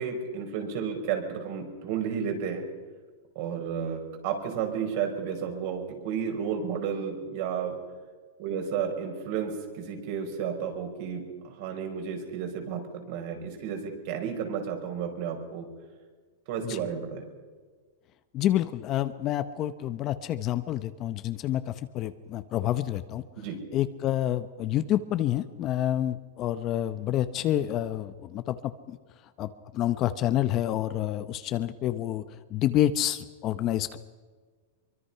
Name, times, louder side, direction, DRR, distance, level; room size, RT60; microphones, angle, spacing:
voice 1, 0.0-2.6 3.3-7.7 8.4-15.7 16.5-17.2 23.4-23.6, right 7 dB, 45° right, 4 dB, 5.1 m, -32 dB
voice 2, 18.3-23.2 23.7-29.0 29.4-32.2 32.5-34.0, left 12 dB, 25° left, 12 dB, 0.8 m, -28 dB
24.5 x 23.5 x 5.7 m, 1.5 s
supercardioid pair, 165°, 0 cm